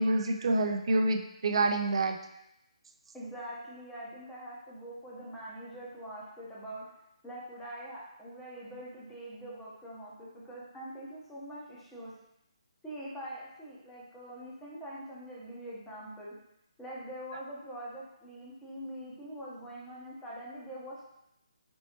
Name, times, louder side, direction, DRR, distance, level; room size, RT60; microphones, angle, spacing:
voice 1, 0.0-2.2, right 2 dB, 60° right, 5 dB, 0.5 m, -27 dB
voice 2, 3.1-6.8 7.2-12.1 12.8-16.3 16.8-21.0, right 1 dB, 5° left, -7 dB, 0.9 m, -44 dB
4.3 x 3.0 x 2.9 m, 0.83 s
hypercardioid pair, 155°, 3 cm